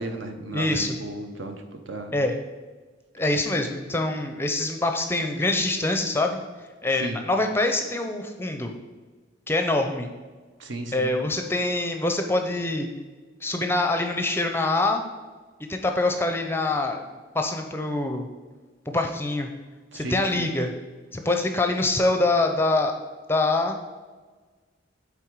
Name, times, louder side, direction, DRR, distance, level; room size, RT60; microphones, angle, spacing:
voice 1, 0.0-2.1 6.9-7.2 10.6-11.1 19.9-20.5, right 2 dB, 65° right, 5 dB, 0.9 m, -34 dB
voice 2, 0.5-1.0 2.1-2.4 3.1-6.4 6.8-8.7 9.5-10.1 10.9-12.9 13.4-15.0 15.6-18.3 18.9-19.5 19.9-20.7 21.1-22.9 23.3-23.8, left 2 dB, 10° left, 5 dB, 0.5 m, -25 dB
8.6 x 3.6 x 4.6 m, 1.4 s
head